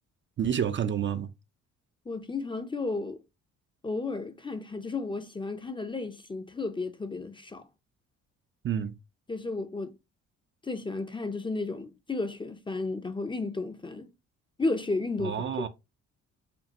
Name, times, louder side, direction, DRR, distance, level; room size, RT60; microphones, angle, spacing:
voice 1, 0.4-1.3 8.6-8.9 15.2-15.7, right 8 dB, 40° right, 0.4 m, -29 dB
voice 2, 2.1-3.2 3.8-7.7 9.3-9.9 10.6-14.1 14.6-15.7, left 3 dB, 15° left, 0.5 m, -33 dB
5.2 x 2.4 x 2.8 m
cardioid pair, 90°, 30 cm